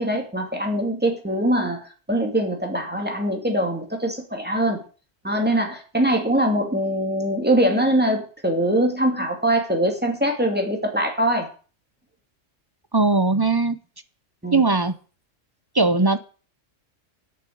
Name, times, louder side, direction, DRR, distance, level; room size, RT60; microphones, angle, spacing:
voice 1, 0.0-1.8 2.1-4.8 5.2-11.5 14.4-14.6, right 1 dB, 10° right, 2 dB, 2.4 m, -22 dB
voice 2, 12.9-13.8 14.5-14.9 15.7-16.2, right 3 dB, 25° right, 11 dB, 0.6 m, -19 dB
8.7 x 6.9 x 8.6 m, 0.37 s
omnidirectional pair, 1.3 m